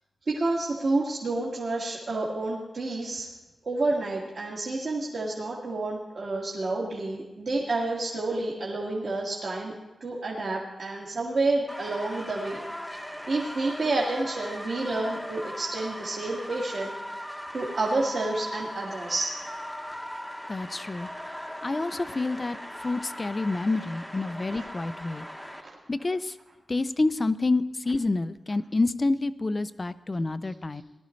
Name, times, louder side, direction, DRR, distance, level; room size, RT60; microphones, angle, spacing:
voice 1, 0.3-3.3 3.6-9.7 10.0-12.6 13.3-17.0 17.5-19.3 24.5-24.7 25.6-25.8, right 2 dB, 50° right, -5 dB, 1.9 m, -29 dB
sound 1, 11.7-25.6, equal, ahead, 0.9 m, -39 dB
voice 2, 20.5-21.1 21.6-25.2 25.9-26.4 26.7-30.8, left 2 dB, 25° left, 13 dB, 0.4 m, -28 dB
19.0 x 12.5 x 3.2 m, 1.1 s
wide cardioid pair, 175°, 0 cm